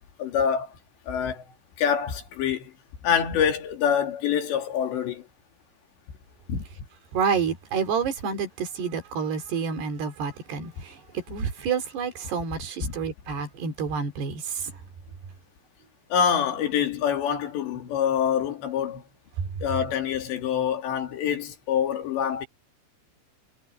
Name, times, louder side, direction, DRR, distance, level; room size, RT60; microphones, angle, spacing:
voice 1, 0.2-0.8 1.1-1.4 1.8-2.7 3.0-5.3 6.5-6.6 12.8-13.0 16.1-19.0 19.6-22.5, left 8 dB, 85° left, 5.0 m, -25 dB
voice 2, 7.1-10.9 11.3-14.4, right 6 dB, 70° right, 5.2 m, -29 dB
omnidirectional pair, 5.0 m